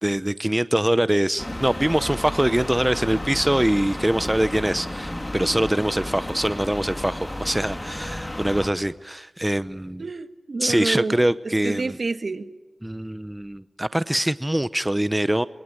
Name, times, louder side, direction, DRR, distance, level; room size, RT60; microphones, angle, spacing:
voice 1, 0.0-10.0 10.6-11.9 12.8-15.5, right 1 dB, 15° right, 14 dB, 0.8 m, -23 dB
sound 1, 1.4-8.7, left 1 dB, 20° left, 2.9 m, -32 dB
voice 2, 10.0-12.5, right 3 dB, 65° right, 11 dB, 1.5 m, -29 dB
25.5 x 21.5 x 9.4 m, 1.1 s
cardioid pair, 50°, 0 cm